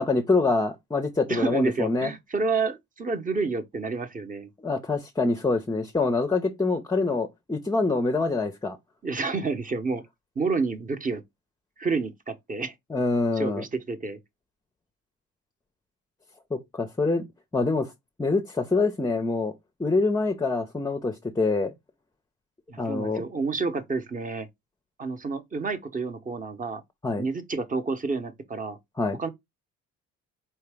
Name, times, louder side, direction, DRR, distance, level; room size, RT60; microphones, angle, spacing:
voice 1, 0.0-2.1 4.6-8.8 12.9-13.6 16.5-17.2 17.5-17.9 18.2-19.5 19.8-21.7 22.8-23.2 27.0-27.2 29.0-29.2, left 3 dB, 10° left, 0.5 m, -25 dB
voice 2, 1.3-4.5 9.0-10.0 10.4-11.2 11.8-12.7 13.4-14.2 22.7-24.5 25.0-26.8 27.2-28.8 29.2-29.3, right 4 dB, 25° right, 0.8 m, -29 dB
4.4 x 2.8 x 3.4 m
cardioid pair, 90°, 30 cm